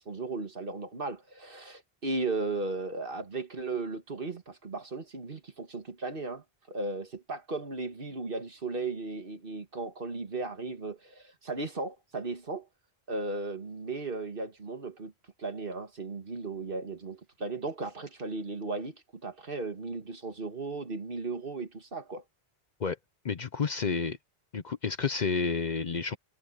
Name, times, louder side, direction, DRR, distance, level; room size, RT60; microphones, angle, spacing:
voice 1, 0.0-12.7 13.1-15.1 15.4-22.2, right 3 dB, 55° right, 2.0 m, -36 dB
voice 2, 23.2-24.2 24.5-26.2, left 5 dB, 50° left, 0.8 m, -30 dB
omnidirectional pair, 1.1 m